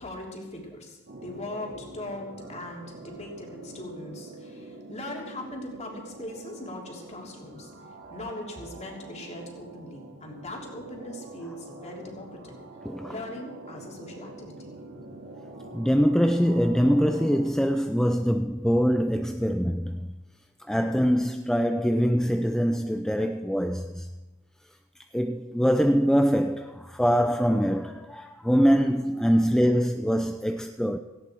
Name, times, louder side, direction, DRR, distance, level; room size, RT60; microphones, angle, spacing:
voice 1, 0.0-7.7 8.1-12.5 13.0-14.8, left 1 dB, 30° left, 3.2 m, -40 dB
sound 1, 1.1-17.5, right 2 dB, 55° right, 2.1 m, -45 dB
voice 2, 12.8-13.2 15.7-20.1 20.7-24.1 25.1-31.0, equal, ahead, 0.5 m, -23 dB
17.5 x 16.0 x 4.5 m
head